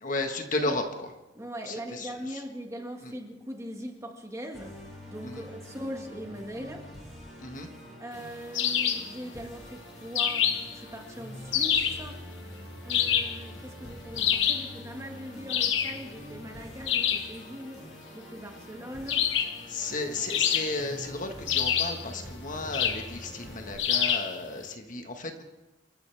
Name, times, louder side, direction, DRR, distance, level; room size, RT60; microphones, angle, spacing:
voice 1, 0.0-0.8 1.7-2.4 5.2-5.4 7.4-7.7 19.7-25.4, left 2 dB, 40° left, 5 dB, 1.5 m, -33 dB
voice 2, 1.3-4.8 5.1-6.9 8.0-12.2 12.8-17.9 18.1-19.3, equal, 15° right, 2 dB, 1.7 m, -41 dB
Musical instrument, 4.5-23.7, equal, ahead, 7.2 m, -46 dB
sound 1, 8.5-9.1 10.2-10.8 11.5-12.0 12.9-13.4 14.2-14.7 15.5-16.0 16.9-17.3 19.1-19.6 20.3-21.0 21.5-22.0 22.7-23.1 23.8-24.3, left 8 dB, 70° left, 1.3 m, -26 dB
28.0 x 14.5 x 3.5 m, 1.0 s
head